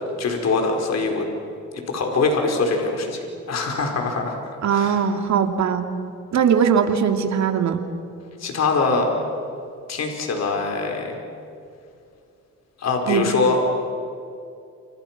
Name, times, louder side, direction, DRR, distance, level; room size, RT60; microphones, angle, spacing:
voice 1, 0.2-1.3 1.9-3.2 3.5-4.4 4.7-5.0 8.4-9.1 9.9-11.1 12.8-13.6, left 3 dB, 60° left, 2 dB, 4.7 m, -23 dB
voice 2, 4.6-5.8 6.3-7.8 13.1-13.3, right 7 dB, 65° right, 6 dB, 2.7 m, -20 dB
29.5 x 28.0 x 6.0 m, 2.5 s
cardioid pair, 90°, 30 cm